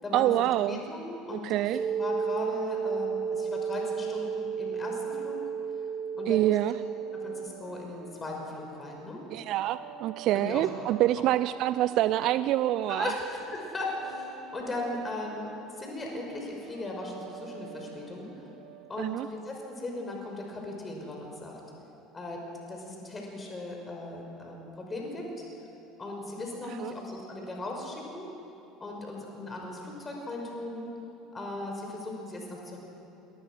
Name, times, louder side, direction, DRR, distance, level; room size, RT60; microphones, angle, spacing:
voice 1, 0.1-0.8 1.3-1.8 6.3-6.7 9.3-13.1 19.0-19.3 26.8-26.9, right 14 dB, 55° right, 14 dB, 0.5 m, -26 dB
voice 2, 0.7-5.4 6.2-6.5 7.2-9.2 10.3-10.6 12.9-15.5 15.7-18.3 18.9-21.6 22.1-25.3 26.0-28.3 28.8-30.9 31.3-32.8, left 2 dB, 25° left, 0 dB, 5.9 m, -38 dB
sound 1, 1.7-7.5, right 6 dB, 20° right, 1.6 m, -32 dB
sound 2, 6.7-19.7, right 9 dB, 75° right, 2.0 m, -49 dB
26.5 x 20.0 x 6.4 m, 3.0 s
hypercardioid pair, 70°, 0 cm